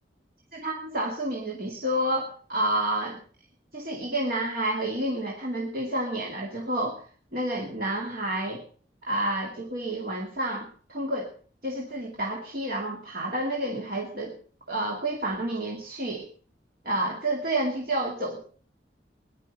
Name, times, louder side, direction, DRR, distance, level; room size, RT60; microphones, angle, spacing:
voice 1, 0.5-3.2 3.7-7.0 7.3-8.6 9.1-11.3 11.6-14.4 14.7-16.3 16.8-18.5, right 1 dB, 55° right, -1 dB, 2.4 m, -29 dB
18.0 x 11.0 x 5.4 m, 0.44 s
head